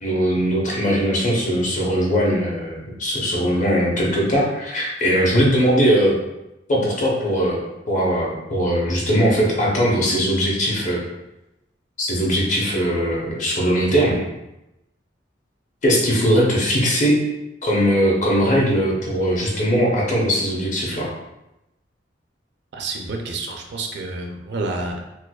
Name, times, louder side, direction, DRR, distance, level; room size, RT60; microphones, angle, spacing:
voice 1, 0.0-6.2 6.7-7.6 7.9-11.0 12.0-14.2 15.8-17.2 17.6-21.1, equal, 40° left, -3 dB, 0.8 m, -20 dB
voice 2, 22.7-25.0, right 3 dB, 60° right, 2 dB, 0.4 m, -29 dB
4.5 x 2.1 x 2.3 m, 0.93 s
head